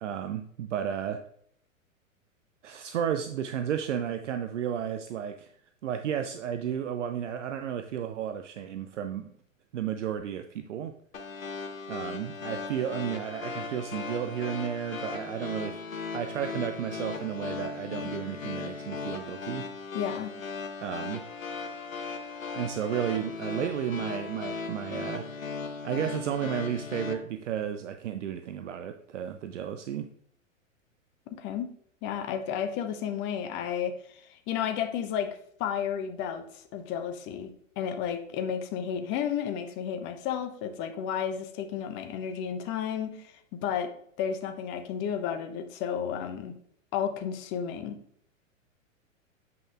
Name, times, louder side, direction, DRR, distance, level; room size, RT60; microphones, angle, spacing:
voice 1, 0.0-1.2 2.6-5.5 5.8-9.3 9.7-10.9 11.9-15.8 16.1-19.7 20.8-21.2 22.5-25.3 25.8-30.1, right 9 dB, 65° right, 7 dB, 0.6 m, -33 dB
sound 1, 11.1-27.1, left 4 dB, 80° left, 1.0 m, -37 dB
voice 2, 19.9-20.3 31.3-31.7 32.0-37.5 37.8-43.3 43.6-43.9 44.2-46.5 46.9-48.0, left 8 dB, 30° left, 7 dB, 0.7 m, -32 dB
7.5 x 5.7 x 2.4 m, 0.65 s
figure-of-eight pair, 100°, 40 cm